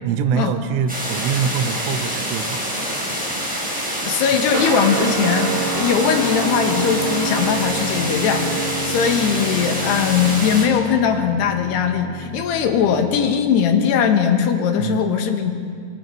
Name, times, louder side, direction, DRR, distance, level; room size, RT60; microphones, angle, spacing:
voice 1, 0.0-2.6 14.8-15.1, right 7 dB, 85° right, 9 dB, 3.5 m, -24 dB
sound 1, 0.9-10.7, equal, ahead, 4.1 m, -26 dB
voice 2, 4.0-15.5, left 7 dB, 65° left, 5 dB, 3.3 m, -20 dB
Guitar, 4.5-13.3, right 3 dB, 55° right, 2.3 m, -28 dB
26.5 x 26.5 x 4.7 m, 2.2 s
omnidirectional pair, 5.7 m